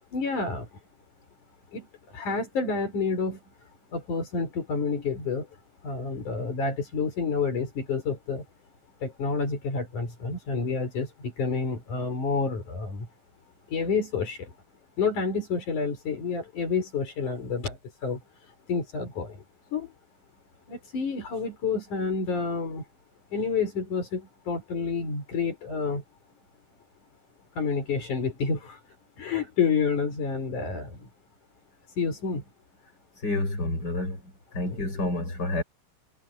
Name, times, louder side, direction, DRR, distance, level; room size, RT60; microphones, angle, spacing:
voice 1, 0.1-0.7 1.7-3.4 3.9-5.5 5.8-8.4 9.0-13.1 13.7-14.5 15.0-18.2 18.7-19.4 19.7-19.9 20.7-22.8 23.3-26.0 27.6-28.8 29.2-31.1 32.0-32.4 34.6-34.8, left 5 dB, 80° left, 6.5 m, -29 dB
voice 2, 33.2-34.2 34.5-35.6, left 2 dB, 30° left, 6.8 m, -29 dB
omnidirectional pair, 3.5 m